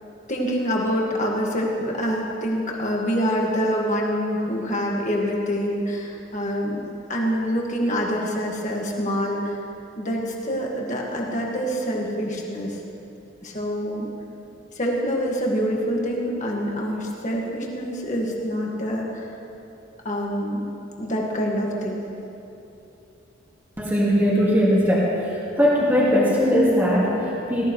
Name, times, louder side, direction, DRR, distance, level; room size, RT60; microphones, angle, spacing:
voice 1, 0.3-6.8 7.1-9.6 10.0-12.8 13.4-14.1 14.8-19.3 20.1-20.6 21.0-22.0, equal, 40° left, -2 dB, 1.9 m, -26 dB
voice 2, 23.8-25.1 25.6-27.7, equal, 10° right, -7 dB, 2.1 m, -19 dB
19.0 x 14.0 x 3.2 m, 2.8 s
head